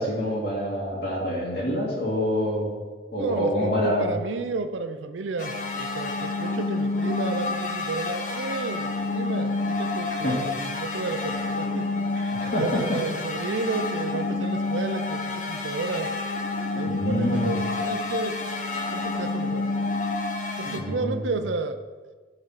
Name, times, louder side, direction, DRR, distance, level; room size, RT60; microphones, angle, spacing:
voice 1, 0.0-2.7 3.1-4.1 10.2-10.4 12.2-13.0 16.8-17.5 20.6-21.2, equal, 65° left, -6 dB, 1.9 m, -26 dB
voice 2, 3.2-11.9 12.6-16.1 16.8-18.4 18.9-19.7 20.6-21.8, right 3 dB, 90° right, 9 dB, 0.5 m, -32 dB
sound 1, 5.4-20.8, left 3 dB, 40° left, 0.8 m, -29 dB
11.0 x 3.9 x 5.7 m, 1.4 s
head